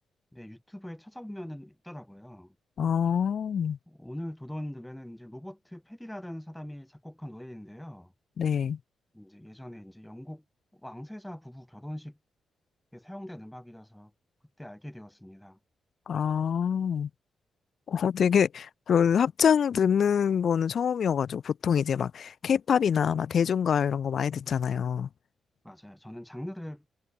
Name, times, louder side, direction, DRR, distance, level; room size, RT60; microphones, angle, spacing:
voice 1, 0.3-2.6 3.9-8.1 9.1-10.4 10.7-12.2 12.9-14.1 14.6-15.6 25.6-26.9, left 1 dB, 5° left, 5.7 m, -42 dB
voice 2, 2.8-3.8 8.4-8.8 16.1-17.1 17.9-25.1, left 7 dB, 60° left, 0.7 m, -25 dB
cardioid pair, 100°, 0 cm